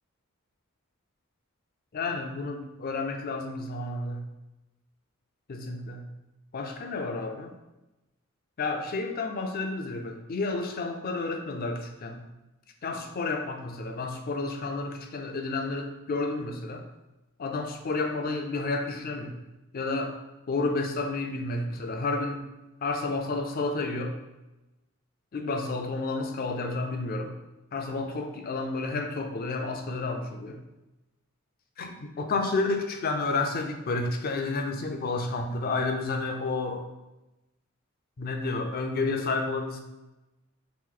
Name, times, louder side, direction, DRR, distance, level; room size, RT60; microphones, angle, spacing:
voice 1, 1.9-4.2 5.5-6.1 6.5-7.5 8.6-12.2 12.8-16.9 17.4-19.4 19.7-20.1 20.5-22.4 22.8-24.2 25.3-27.3 27.7-30.6 31.8-36.8 38.2-39.8, left 3 dB, 45° left, 4 dB, 0.4 m, -31 dB
3.0 x 2.6 x 3.7 m, 0.99 s
head